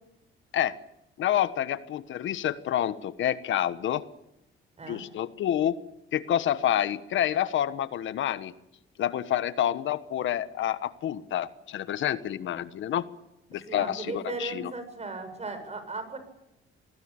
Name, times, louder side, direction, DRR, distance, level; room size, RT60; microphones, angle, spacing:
voice 1, 1.2-4.0 4.9-5.8 6.1-8.5 9.0-13.1 13.5-14.7, left 11 dB, 75° left, 13 dB, 1.3 m, -28 dB
voice 2, 13.7-16.2, right 3 dB, 35° right, 9 dB, 7.6 m, -37 dB
26.0 x 20.0 x 8.9 m, 0.86 s
cardioid pair, 90°, 20 cm